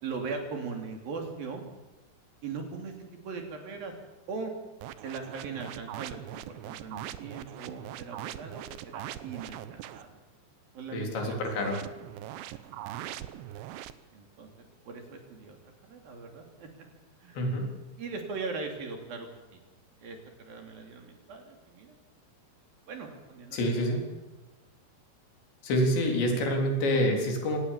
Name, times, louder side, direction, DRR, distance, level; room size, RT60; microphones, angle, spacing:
voice 1, 0.0-1.6 2.4-2.9 3.2-3.9 4.3-4.5 5.0-10.2 10.7-11.6 12.5-13.3 14.1-15.6 15.9-16.9 17.2-17.4 18.0-19.6 20.0-22.0 22.9-23.6, right 4 dB, 60° right, 3 dB, 4.6 m, -40 dB
sound 1, 4.8-10.1 11.4-13.9, right 13 dB, 85° right, 3.1 m, -41 dB
voice 2, 10.9-11.8 17.4-17.7 23.5-24.0 25.6-27.6, equal, 85° left, 2 dB, 6.1 m, -27 dB
25.0 x 19.5 x 7.3 m, 1.1 s
omnidirectional pair, 4.9 m